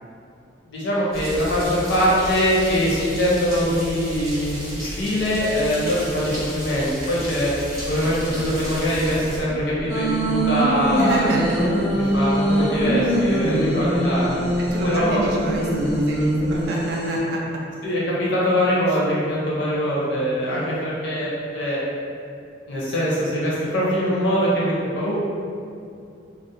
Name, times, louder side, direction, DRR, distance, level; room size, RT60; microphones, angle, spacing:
voice 1, 0.7-7.5 7.9-11.3 11.9-14.4 14.8-15.3 17.8-21.8 22.7-25.2, equal, 70° left, -6 dB, 0.7 m, -23 dB
sound 1, 1.1-9.4, equal, 15° right, 0.6 m, -33 dB
sound 2, 7.7-16.7, equal, 35° left, 0.3 m, -37 dB
sound 3, 9.9-17.2, right 1 dB, 90° left, 1.2 m, -22 dB
voice 2, 10.9-11.6 13.5-13.9 14.6-17.6 18.9-19.0 20.4-20.8, right 1 dB, 55° right, -2 dB, 0.4 m, -29 dB
2.4 x 2.0 x 2.7 m, 2.4 s
head